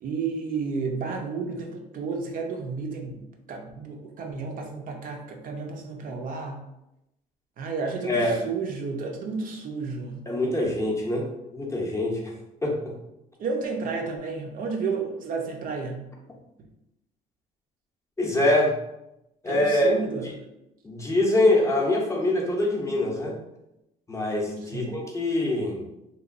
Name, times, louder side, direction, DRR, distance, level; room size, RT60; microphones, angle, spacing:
voice 1, 0.0-6.6 7.6-10.3 13.4-16.0 19.5-20.3 24.6-25.0, right 4 dB, 55° right, 2 dB, 0.5 m, -32 dB
voice 2, 8.0-8.4 10.3-11.3 11.5-12.3 12.6-13.0 18.2-18.8 19.4-20.0 20.8-23.3 24.1-25.8, left 1 dB, 15° left, -1 dB, 0.5 m, -24 dB
2.9 x 2.2 x 2.4 m, 0.88 s
cardioid pair, 110°, 17 cm